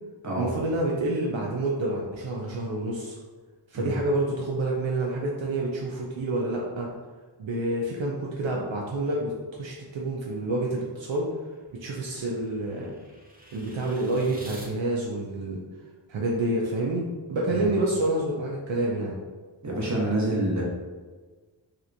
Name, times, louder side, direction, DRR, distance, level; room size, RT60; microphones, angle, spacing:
voice 1, 0.3-3.1 3.7-6.9 7.4-9.3 9.6-11.3 11.7-12.9 13.5-15.6 16.1-19.2, right 2 dB, 75° right, -2 dB, 0.5 m, -28 dB
sound 1, 11.1-14.7, right 1 dB, 20° right, 0.6 m, -48 dB
voice 2, 19.6-20.6, right 1 dB, 35° right, -4 dB, 1.0 m, -27 dB
3.3 x 2.8 x 2.5 m, 1.4 s
wide cardioid pair, 55°, 46 cm